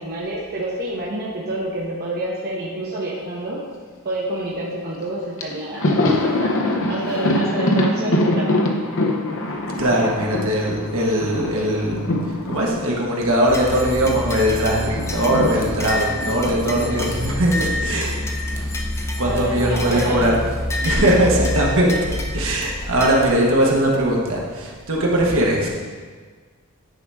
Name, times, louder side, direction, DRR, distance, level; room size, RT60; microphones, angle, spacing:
voice 1, 0.0-3.6 4.0-6.5 6.9-8.7 19.2-20.4 20.8-21.1, right 1 dB, 45° right, -5 dB, 1.0 m, -28 dB
Thunder, 5.0-5.1 5.4-14.2 14.5-18.8 19.0-19.2 20.4-21.1, left 1 dB, 65° left, 0.8 m, -25 dB
voice 2, 9.8-12.0 12.5-18.2 19.2-20.4 20.8-25.7, right 1 dB, 65° right, -2 dB, 1.4 m, -20 dB
sound 1, 13.5-23.3, left 1 dB, 15° left, 0.6 m, -27 dB
10.0 x 4.9 x 3.5 m, 1.5 s
head